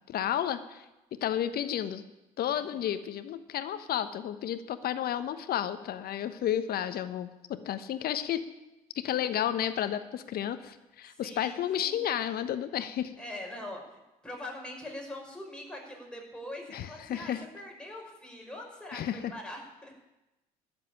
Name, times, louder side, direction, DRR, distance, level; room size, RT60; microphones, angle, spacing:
voice 1, 0.1-0.9 1.2-2.0 2.4-8.4 9.0-13.1 16.7-17.4 18.9-19.3, left 10 dB, 55° left, 12 dB, 1.1 m, -32 dB
voice 2, 11.1-12.1 13.2-13.8 14.2-19.9, left 1 dB, 5° left, 0 dB, 5.5 m, -43 dB
13.0 x 7.5 x 9.9 m, 0.97 s
hypercardioid pair, 55°, 18 cm